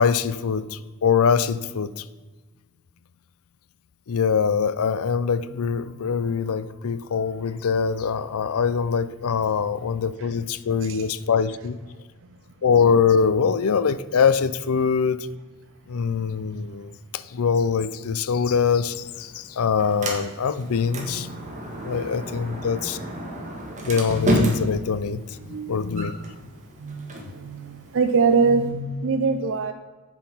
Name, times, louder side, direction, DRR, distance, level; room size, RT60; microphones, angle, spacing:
voice 1, 0.0-2.1 4.1-11.8 12.6-15.3 15.9-21.3 21.8-23.0 23.8-26.5, left 6 dB, 70° left, 15 dB, 0.5 m, -23 dB
Sliding door, 18.7-28.7, equal, 35° right, 1.9 m, -31 dB
voice 2, 20.9-22.2 23.3-23.4 25.4-25.7 26.8-29.7, right 4 dB, 60° right, 8 dB, 0.5 m, -25 dB
8.0 x 7.1 x 5.5 m, 1.3 s
head